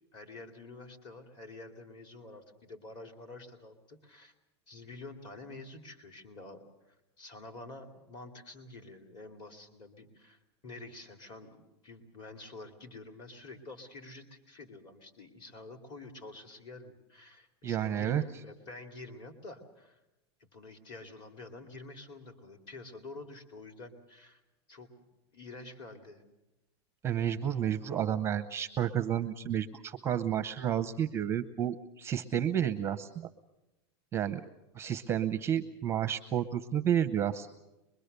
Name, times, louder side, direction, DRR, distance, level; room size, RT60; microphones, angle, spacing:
voice 1, 0.1-4.3 4.7-6.6 7.2-20.0 20.5-24.4 24.7-24.9 25.3-26.2, left 2 dB, 30° left, 6 dB, 2.8 m, -48 dB
voice 2, 17.6-18.2 27.0-33.3 34.1-34.4 34.7-37.5, right 9 dB, 20° right, 10 dB, 0.7 m, -31 dB
24.5 x 22.0 x 6.8 m, 0.97 s
supercardioid pair, 150°, 14 cm